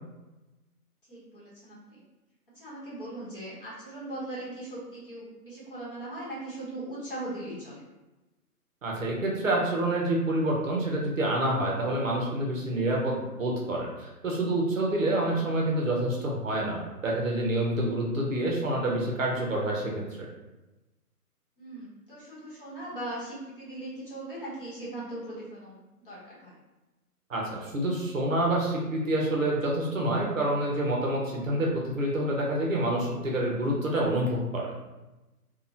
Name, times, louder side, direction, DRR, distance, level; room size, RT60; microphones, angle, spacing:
voice 1, 1.1-2.0 2.5-7.8 15.1-15.4 21.6-26.5, right 1 dB, 35° left, -8 dB, 0.9 m, -39 dB
voice 2, 8.8-20.0 27.3-34.7, right 1 dB, 55° right, -2 dB, 0.7 m, -27 dB
2.9 x 2.1 x 2.6 m, 1.1 s
hypercardioid pair, 170°, 46 cm